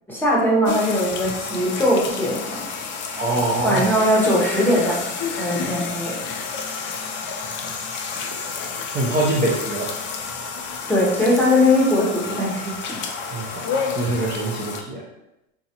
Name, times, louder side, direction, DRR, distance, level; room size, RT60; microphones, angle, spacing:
voice 1, 0.1-2.6 3.6-5.0 5.3-6.1 10.9-12.7, left 1 dB, 5° left, -5 dB, 0.9 m, -20 dB
sound 1, 0.7-14.8, left 5 dB, 30° left, 0.4 m, -30 dB
voice 2, 3.1-3.9 8.9-9.9 13.3-15.0, right 2 dB, 25° right, -4 dB, 0.5 m, -24 dB
4.0 x 2.3 x 2.8 m, 0.89 s
supercardioid pair, 120°, 38 cm